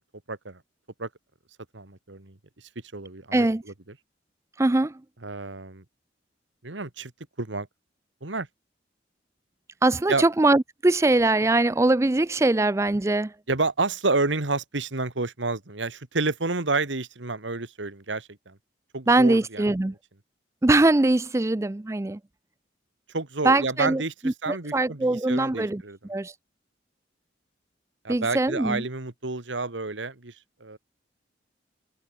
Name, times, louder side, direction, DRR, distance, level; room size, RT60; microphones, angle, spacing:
voice 1, 0.3-0.6 1.0-1.1 1.7-2.4 2.9-3.5 5.2-5.8 6.6-7.1 7.4-7.7 8.2-8.5 10.1-10.2 13.5-18.6 18.9-19.6 23.1-26.0 28.0-30.3 30.6-30.8, right 3 dB, 90° right, 1.9 m, -29 dB
voice 2, 3.3-3.6 4.6-5.0 9.8-13.3 19.1-19.9 20.6-22.2 23.4-26.3 28.1-28.8, right 2 dB, 15° right, 0.4 m, -22 dB
head